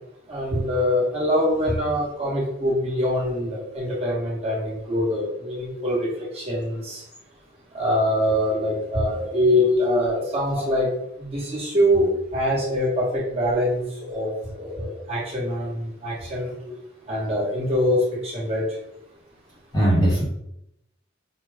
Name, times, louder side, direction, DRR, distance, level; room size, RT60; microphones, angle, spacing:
voice 1, 0.3-6.1 6.3-7.0 7.7-10.9 11.2-16.5 17.1-18.6, equal, 30° right, -5 dB, 1.2 m, -24 dB
voice 2, 19.7-20.2, equal, 20° left, -4 dB, 1.1 m, -20 dB
4.6 x 2.2 x 3.5 m, 0.81 s
head